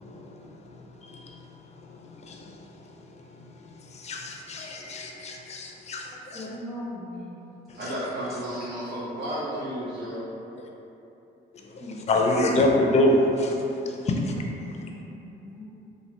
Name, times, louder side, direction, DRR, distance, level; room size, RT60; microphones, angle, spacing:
voice 1, 1.0-1.4 2.2-2.4 3.9-6.4 12.1-13.5 14.1-14.2, left 1 dB, 35° left, 1 dB, 0.4 m, -25 dB
voice 2, 6.3-7.4 11.8-12.2 14.1-14.3 14.6-15.6, left 1 dB, ahead, -13 dB, 0.8 m, -40 dB
voice 3, 7.7-10.3, equal, 60° right, -11 dB, 1.1 m, -32 dB
2.8 x 2.5 x 3.3 m, 2.9 s
cardioid pair, 90°, 20 cm